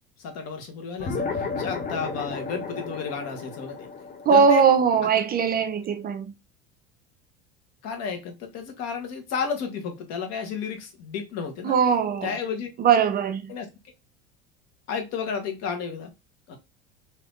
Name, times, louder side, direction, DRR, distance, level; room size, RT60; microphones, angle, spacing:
voice 1, 0.2-3.9 4.3-4.6 7.8-11.7 12.2-12.7 13.5-13.7 14.9-16.1 16.5-16.6, left 6 dB, 55° left, 1.2 m, -32 dB
sound 1, 1.0-5.8, left 4 dB, 30° left, 1.0 m, -33 dB
voice 2, 4.3-6.3 11.6-12.3 12.8-13.5, right 6 dB, 30° right, 0.4 m, -20 dB
3.3 x 2.8 x 2.4 m
hypercardioid pair, 80°, 30 cm